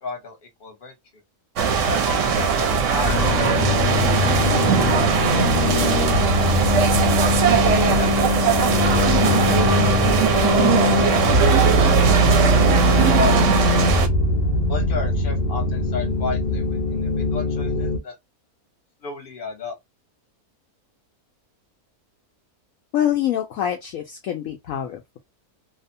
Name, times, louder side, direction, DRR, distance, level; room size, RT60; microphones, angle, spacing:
voice 1, 0.0-0.9 1.9-6.7 7.8-10.4 13.2-13.4 14.7-18.1 19.0-19.8, left 4 dB, 40° left, 1.0 m, -34 dB
sound 1, 1.6-14.1, right 6 dB, 65° right, 0.8 m, -19 dB
sound 2, 3.0-18.0, left 2 dB, 85° left, 0.5 m, -21 dB
voice 2, 22.9-25.2, left 10 dB, 70° left, 0.9 m, -25 dB
2.8 x 2.1 x 2.5 m
omnidirectional pair, 1.6 m